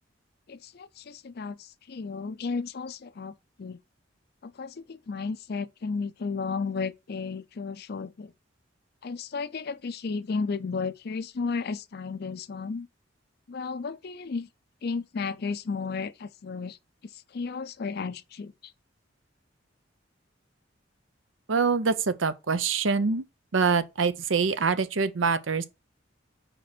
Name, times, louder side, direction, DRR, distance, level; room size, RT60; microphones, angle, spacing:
voice 1, 0.5-3.8 4.4-8.3 9.0-12.9 13.5-14.5 14.8-16.8 17.1-18.7, left 4 dB, 55° left, 0.5 m, -33 dB
voice 2, 21.5-23.2 23.5-25.7, right 5 dB, 85° right, 0.7 m, -25 dB
5.0 x 4.4 x 6.0 m
head